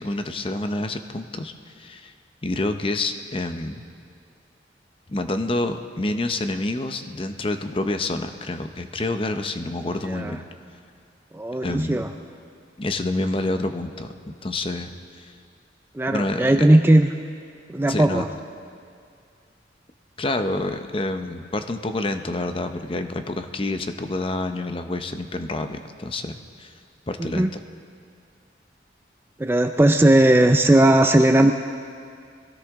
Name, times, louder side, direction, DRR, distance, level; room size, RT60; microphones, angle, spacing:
voice 1, 0.0-2.1 2.4-3.8 5.1-10.4 11.6-12.0 12.8-15.3 16.1-16.7 17.9-18.2 20.2-26.7 27.1-27.6, left 2 dB, 30° left, 8 dB, 0.7 m, -28 dB
voice 2, 10.0-10.4 11.3-12.1 15.9-17.1 17.7-18.3 27.2-27.5 29.4-31.5, right 1 dB, 10° right, 5 dB, 0.4 m, -17 dB
22.5 x 16.5 x 3.6 m, 2.3 s
head